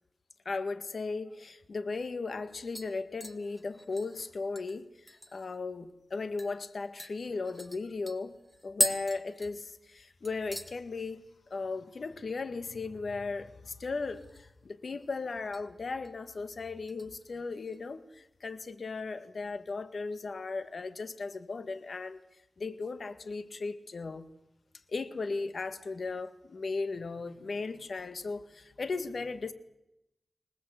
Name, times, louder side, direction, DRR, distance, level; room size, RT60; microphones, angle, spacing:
voice 1, 0.5-8.4 8.6-11.3 11.5-14.3 14.6-22.2 22.6-24.3 24.9-29.5, left 3 dB, 65° left, 1.9 m, -36 dB
sound 1, 1.7-1.8 2.1-2.4 2.8-5.6 5.9-6.0 6.4-6.5 7.0-10.0 10.2-10.8 11.1-11.5 11.8-11.9 14.0-14.6 14.9-15.6 16.0-16.3 16.9-17.8 18.1-18.2, equal, 5° left, 2.2 m, -38 dB
25.0 x 19.5 x 8.3 m
cardioid pair, 60°, 0 cm